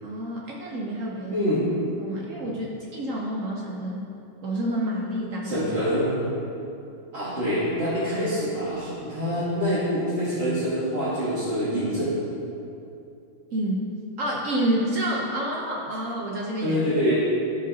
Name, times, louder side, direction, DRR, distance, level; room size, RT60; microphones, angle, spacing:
voice 1, 0.0-1.5 2.0-4.1 4.4-5.7 13.5-13.9 14.2-16.8, right 1 dB, 70° right, -3 dB, 0.7 m, -29 dB
voice 2, 1.3-1.6 5.4-6.3 7.1-12.1 16.6-17.1, equal, 35° right, -12 dB, 1.4 m, -25 dB
12.5 x 5.1 x 2.7 m, 2.7 s
omnidirectional pair, 2.3 m